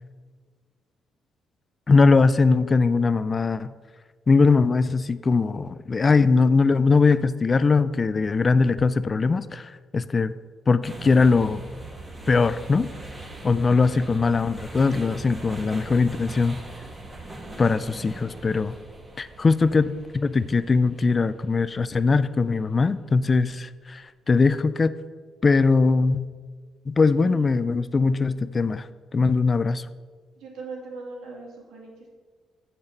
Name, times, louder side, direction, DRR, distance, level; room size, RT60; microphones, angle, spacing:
voice 1, 1.9-3.7 4.3-10.3 10.7-11.6 12.3-12.9 13.4-16.6 17.6-18.7 19.2-24.9 25.4-26.3 26.9-28.9 29.1-29.8, left 4 dB, 35° left, 14 dB, 0.4 m, -21 dB
sound 1, 10.8-22.9, right 2 dB, 25° right, 2.2 m, -41 dB
voice 2, 17.1-17.6 27.2-27.8 30.4-32.1, right 3 dB, 85° right, 0 dB, 2.2 m, -41 dB
7.4 x 7.0 x 6.5 m, 1.5 s
cardioid pair, 90°, 0 cm